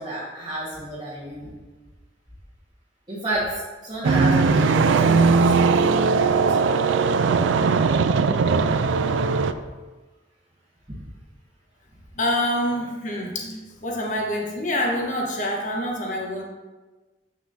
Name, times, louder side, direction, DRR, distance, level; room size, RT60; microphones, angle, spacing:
voice 1, 0.0-1.5 3.1-5.7 6.5-6.9, right 1 dB, 25° right, -9 dB, 1.4 m, -31 dB
sound 1, 4.0-9.5, right 4 dB, 90° right, 0.4 m, -19 dB
voice 2, 12.1-16.4, left 1 dB, 45° left, -1 dB, 1.1 m, -26 dB
8.1 x 6.2 x 2.7 m, 1.3 s
head